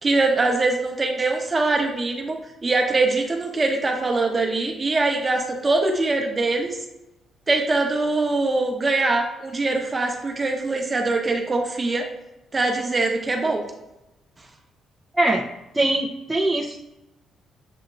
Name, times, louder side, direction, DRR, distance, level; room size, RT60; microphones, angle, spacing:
voice 1, 0.0-6.8 7.5-12.0 12.5-13.6, right 3 dB, 30° right, 2 dB, 0.9 m, -23 dB
voice 2, 15.7-16.8, right 2 dB, 10° right, -3 dB, 0.5 m, -22 dB
7.7 x 2.8 x 2.4 m, 0.95 s
cardioid pair, 90°, 0 cm